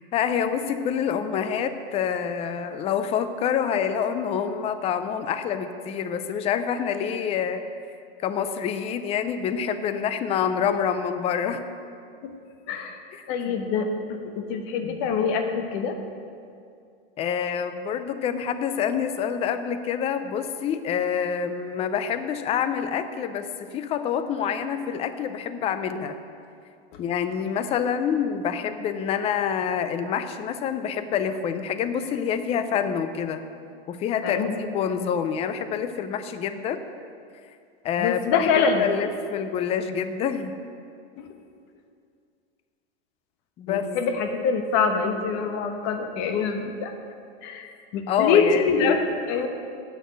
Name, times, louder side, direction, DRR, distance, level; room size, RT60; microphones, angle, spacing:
voice 1, 0.1-7.6 8.2-11.6 13.1-13.5 17.2-26.2 27.0-33.4 33.9-36.8 37.8-40.5 43.6-43.9 48.1-48.7, left 7 dB, 20° left, 10 dB, 0.4 m, -27 dB
voice 2, 12.7-13.0 13.3-15.9 34.2-34.6 38.0-38.8 41.2-41.3 43.7-46.9 47.4-49.5, left 5 dB, 45° left, 5 dB, 1.1 m, -25 dB
8.1 x 6.3 x 7.9 m, 2.4 s
supercardioid pair, 135°, 30 cm